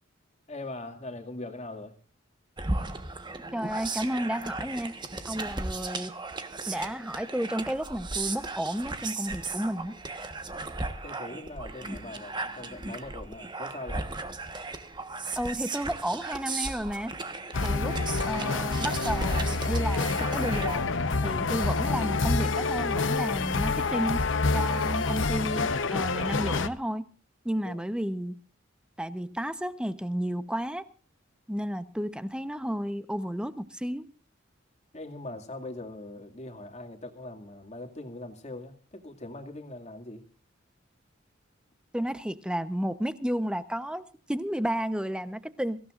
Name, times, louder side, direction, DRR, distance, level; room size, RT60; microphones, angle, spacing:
voice 1, 0.5-2.0 11.0-14.1 27.6-27.8 34.9-40.2, left 2 dB, 35° left, 2.3 m, -41 dB
sound 1, 2.6-20.8, right 3 dB, 25° right, 1.3 m, -36 dB
voice 2, 3.5-5.0 5.2-6.2 6.7-10.0 15.4-17.1 17.6-18.0 18.2-20.9 21.2-27.1 27.4-28.4 29.0-30.9 31.5-34.1 41.9-45.8, equal, 5° right, 0.9 m, -32 dB
sound 2, 17.5-26.7, left 3 dB, 70° left, 0.9 m, -27 dB
24.0 x 16.0 x 2.5 m
head